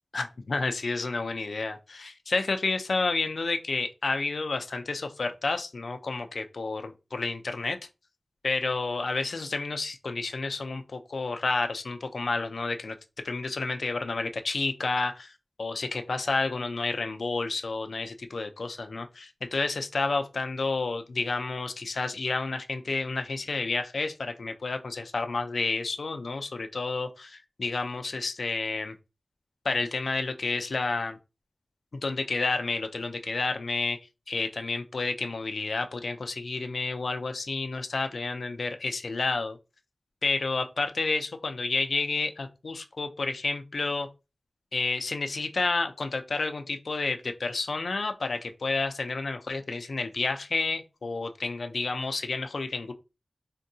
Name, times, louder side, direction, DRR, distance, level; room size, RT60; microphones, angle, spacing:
voice 1, 0.1-7.8 8.4-13.0 13.2-29.0 29.6-31.2 31.9-34.0 34.3-39.6 40.2-44.1 44.7-52.9, left 3 dB, 90° left, 0.4 m, -30 dB
3.6 x 2.2 x 2.6 m
wide cardioid pair, 70°, 0 cm